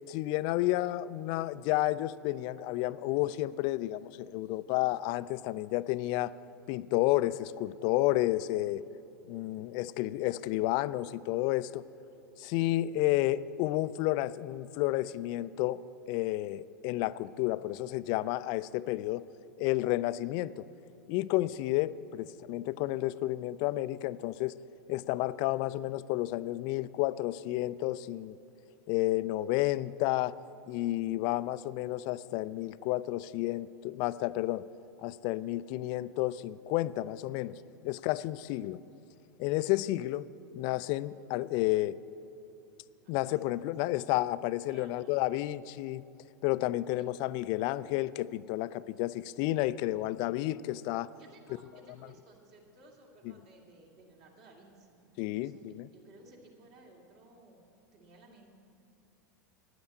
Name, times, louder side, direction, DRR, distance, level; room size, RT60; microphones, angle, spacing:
voice 1, 0.1-6.3 6.7-8.8 9.3-11.8 12.4-19.3 19.6-20.7 21.1-24.5 24.9-28.3 28.9-30.4 30.7-34.7 35.0-38.8 39.4-40.2 40.5-42.0 43.1-46.0 46.4-51.1 55.2-55.9, left 16 dB, 45° left, 0.3 m, -31 dB
voice 2, 43.0-43.7 44.7-45.1 46.9-47.1 51.2-55.0 55.4-58.5, right 2 dB, 50° right, 2.6 m, -58 dB
9.8 x 8.8 x 8.6 m
hypercardioid pair, 90°, 10 cm